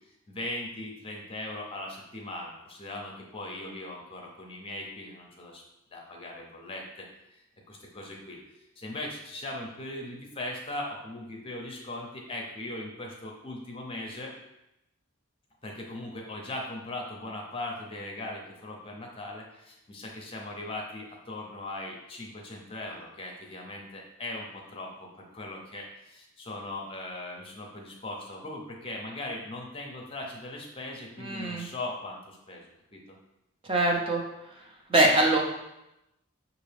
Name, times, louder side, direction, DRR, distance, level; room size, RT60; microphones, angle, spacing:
voice 1, 0.3-5.6 5.9-7.4 7.7-8.4 8.8-14.3 15.6-32.6 32.9-33.0, left 2 dB, 25° left, 0 dB, 0.6 m, -39 dB
voice 2, 31.2-31.7 33.7-34.2 34.9-35.4, right 1 dB, 25° right, -1 dB, 0.6 m, -23 dB
5.8 x 2.4 x 3.3 m, 0.89 s
head